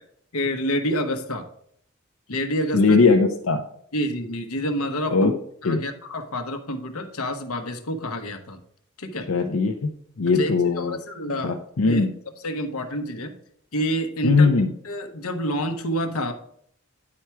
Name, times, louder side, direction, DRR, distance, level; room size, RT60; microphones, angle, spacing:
voice 1, 0.3-1.5 2.3-3.0 3.9-5.3 5.6-8.6 9.0-9.3 10.3-12.1 12.4-13.3 13.7-14.5 14.8-16.3, equal, 90° left, 7 dB, 1.0 m, -28 dB
voice 2, 2.7-3.6 5.1-5.3 5.6-5.8 9.3-9.9 10.2-11.0 11.4-12.1 14.2-14.7, left 4 dB, 70° left, 3 dB, 0.6 m, -19 dB
9.7 x 4.5 x 4.7 m, 0.67 s
head